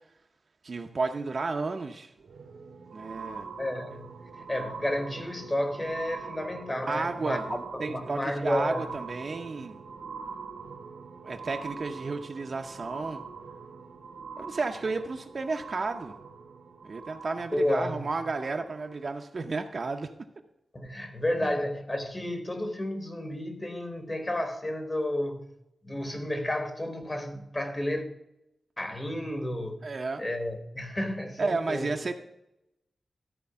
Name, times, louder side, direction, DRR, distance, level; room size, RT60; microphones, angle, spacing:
voice 1, 0.6-2.1 2.9-3.5 6.8-9.8 11.2-13.2 14.4-16.2 16.8-20.1 21.4-21.6 29.8-30.3 31.4-32.1, right 3 dB, 40° right, 0.7 m, -32 dB
sound 1, 2.2-19.1 19.8-19.9, right 5 dB, 85° right, 1.3 m, -43 dB
voice 2, 3.6-8.8 17.5-18.1 20.7-25.4 25.8-28.0 28.8-29.8 30.2-31.9, left 1 dB, 20° left, 1.2 m, -31 dB
13.5 x 4.5 x 5.6 m
wide cardioid pair, 180°, 0 cm